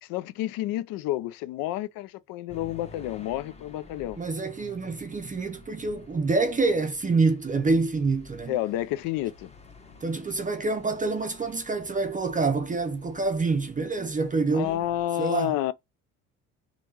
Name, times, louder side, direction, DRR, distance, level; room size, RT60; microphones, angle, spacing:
voice 1, 0.0-4.2 8.5-9.5 14.5-15.7, left 13 dB, 70° left, 0.5 m, -30 dB
sound 1, 2.5-15.0, left 3 dB, 20° left, 1.0 m, -51 dB
voice 2, 4.2-8.6 10.0-14.8 15.2-15.5, right 3 dB, 20° right, 0.5 m, -26 dB
3.5 x 2.3 x 2.8 m
supercardioid pair, 75°, 36 cm